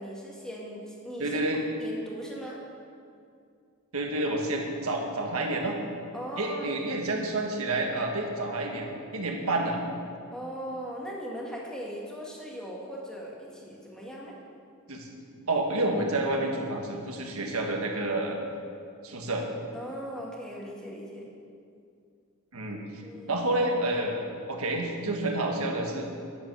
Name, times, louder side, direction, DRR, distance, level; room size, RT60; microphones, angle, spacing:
voice 1, 0.0-1.4 1.8-2.6 6.1-6.8 10.3-14.4 19.7-21.3 23.0-23.5, equal, 5° left, -3 dB, 1.8 m, -39 dB
voice 2, 1.2-1.7 3.9-5.8 6.4-9.8 14.9-15.1 15.5-18.4 19.0-19.4 22.5-23.0 23.3-26.0, right 2 dB, 75° right, 2 dB, 1.6 m, -29 dB
11.0 x 7.8 x 6.9 m, 2.4 s
head